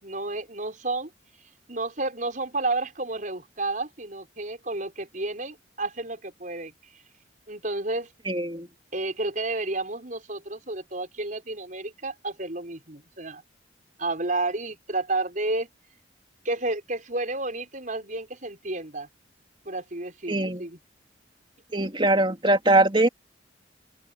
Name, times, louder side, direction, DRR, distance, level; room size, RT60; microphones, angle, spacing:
voice 1, 0.0-1.1 1.7-6.7 7.5-8.1 8.9-13.4 14.0-15.7 16.4-19.1 19.6-20.8, right 2 dB, 45° right, 6.2 m, -31 dB
voice 2, 8.3-8.7 20.3-20.6 21.7-23.1, right 2 dB, 25° right, 3.1 m, -22 dB
open air
head